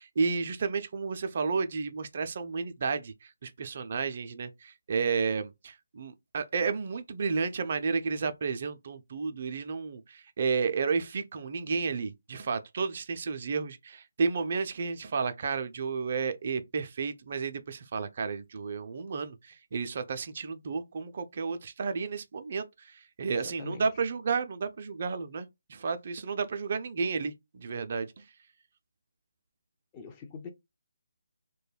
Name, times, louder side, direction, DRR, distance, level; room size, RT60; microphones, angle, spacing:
voice 1, 0.0-28.2, right 5 dB, 45° right, 0.4 m, -32 dB
voice 2, 23.3-23.9 29.9-30.5, left 5 dB, 20° left, 0.4 m, -43 dB
2.2 x 2.1 x 3.2 m
figure-of-eight pair, 155°, 0 cm